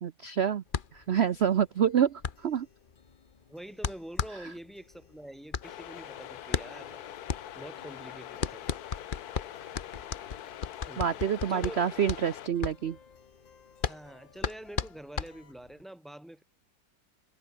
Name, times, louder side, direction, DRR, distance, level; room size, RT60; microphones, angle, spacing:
voice 1, 0.0-0.6 0.9-2.7 4.3-4.5 11.0-13.0, right 8 dB, 85° right, 0.5 m, -27 dB
sound 1, 0.7-15.8, left 6 dB, 35° left, 0.9 m, -36 dB
sound 2, 1.2-15.5, left 6 dB, 80° left, 3.0 m, -60 dB
voice 2, 3.5-7.1 7.6-8.8 10.9-11.2 11.5-12.0 13.8-16.4, right 1 dB, ahead, 1.6 m, -46 dB
sound 3, 5.6-12.5, left 11 dB, 60° left, 1.2 m, -44 dB
omnidirectional pair, 2.0 m